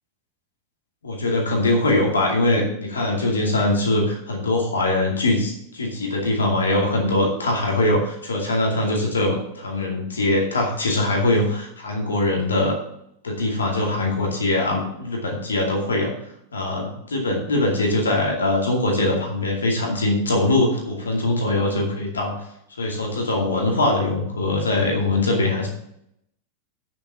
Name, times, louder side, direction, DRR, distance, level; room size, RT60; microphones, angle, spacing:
voice 1, 1.0-12.8 13.2-16.1 16.5-22.3 22.8-25.7, left 2 dB, 70° left, 0 dB, 2.4 m, -22 dB
8.7 x 6.8 x 6.1 m, 0.76 s
figure-of-eight pair, 90°, 0 cm